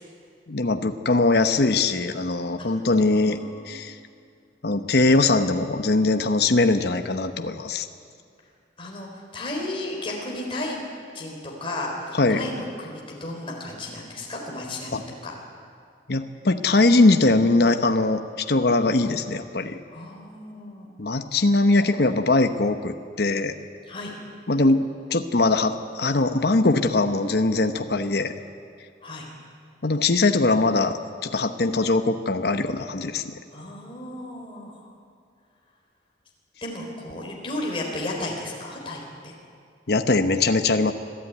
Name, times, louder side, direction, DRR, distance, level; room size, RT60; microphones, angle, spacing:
voice 1, 0.5-3.4 3.7-4.0 4.6-7.9 12.1-12.4 14.9-15.0 16.1-19.8 21.0-23.5 24.5-24.8 25.1-28.3 29.8-33.3 39.9-40.9, left 2 dB, 55° left, 7 dB, 0.9 m, -21 dB
voice 2, 3.1-3.7 8.8-10.8 11.1-15.3 19.9-20.9 23.9-24.2 29.0-29.3 33.5-34.9 36.6-39.3, left 1 dB, 30° left, -2 dB, 4.0 m, -34 dB
25.5 x 13.0 x 9.3 m, 2.2 s
head